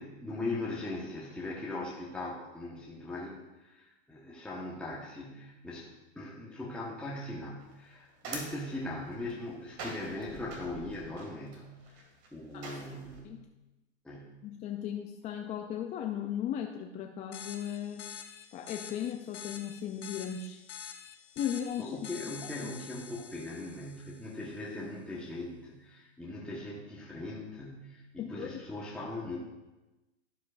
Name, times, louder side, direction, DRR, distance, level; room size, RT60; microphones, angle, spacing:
voice 1, 0.0-13.3 14.0-14.4 21.8-29.4, left 2 dB, 5° left, -6 dB, 1.2 m, -40 dB
sound 1, 7.6-13.2, right 3 dB, 45° right, 2.3 m, -46 dB
voice 2, 14.4-18.1 18.5-20.6 21.4-22.0 22.6-22.7 28.2-28.5, left 9 dB, 20° left, 3 dB, 0.4 m, -36 dB
sound 2, 17.3-24.5, left 8 dB, 70° left, 0.9 m, -47 dB
11.5 x 7.5 x 2.5 m, 1.1 s
hypercardioid pair, 125°, 35 cm